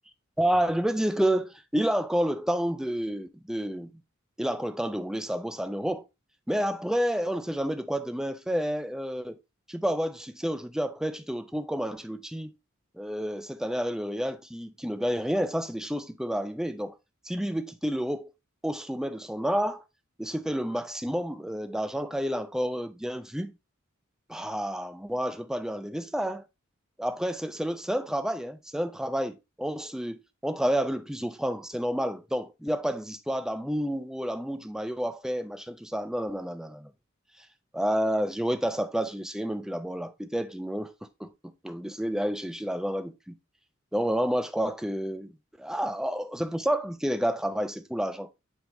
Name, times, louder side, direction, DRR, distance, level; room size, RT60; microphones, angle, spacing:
voice 1, 0.4-3.9 4.4-6.0 6.5-9.4 9.7-12.5 12.9-16.9 17.2-18.3 18.6-19.8 20.2-23.5 24.3-26.4 27.0-36.9 37.7-40.9 41.2-43.4 43.9-48.3, equal, 5° right, 0.5 m, -30 dB
9.0 x 3.5 x 3.0 m
head